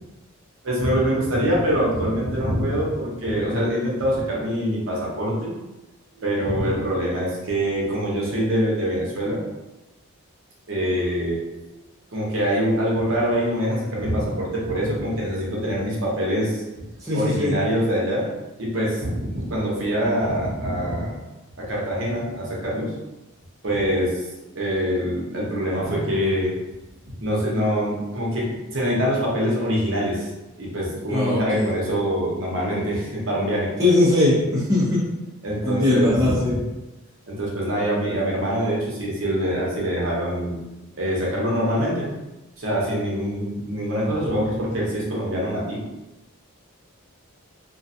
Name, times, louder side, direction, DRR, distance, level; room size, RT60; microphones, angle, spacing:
voice 1, 0.6-5.5 6.2-9.4 10.7-11.4 12.1-16.8 17.1-18.3 18.6-21.1 21.6-22.9 23.6-24.3 24.6-26.5 27.2-30.3 30.6-33.7 35.4-36.6 37.3-40.6 40.9-42.1 42.6-45.8, equal, 60° right, -4 dB, 0.7 m, -24 dB
voice 2, 17.0-17.5 31.1-31.7 33.8-35.0 35.6-36.5, left 2 dB, 15° right, -8 dB, 0.5 m, -20 dB
2.3 x 2.2 x 2.6 m, 1.0 s
head